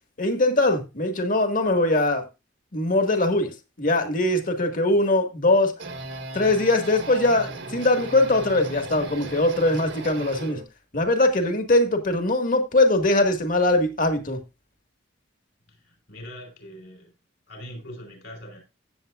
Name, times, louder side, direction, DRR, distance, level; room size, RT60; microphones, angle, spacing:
voice 1, 0.2-2.3 2.7-5.7 6.3-10.6 10.9-14.4, left 2 dB, 45° left, 1.8 m, -21 dB
sound 1, 5.5-10.6, right 2 dB, 70° right, 1.7 m, -37 dB
voice 2, 15.7-17.1 17.5-18.6, equal, 65° left, 4.6 m, -42 dB
16.0 x 7.5 x 2.5 m
head